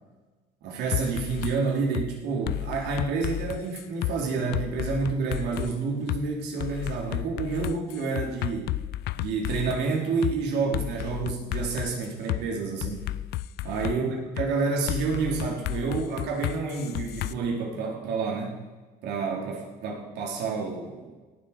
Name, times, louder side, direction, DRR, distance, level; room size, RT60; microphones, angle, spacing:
voice 1, 0.6-8.7 9.2-13.1 13.6-18.6 19.0-21.1, right 4 dB, 80° right, 0 dB, 3.6 m, -29 dB
sound 1, 0.9-1.6 1.9-2.1 2.5-4.1 4.5-5.7 6.1-6.2 6.6-9.8 10.2-10.4 10.7-12.4 12.8-14.0 14.4-14.5 14.9-17.3, left 16 dB, 75° left, 0.4 m, -32 dB
18.0 x 7.4 x 5.1 m, 1.3 s
cardioid pair, 110°, 17 cm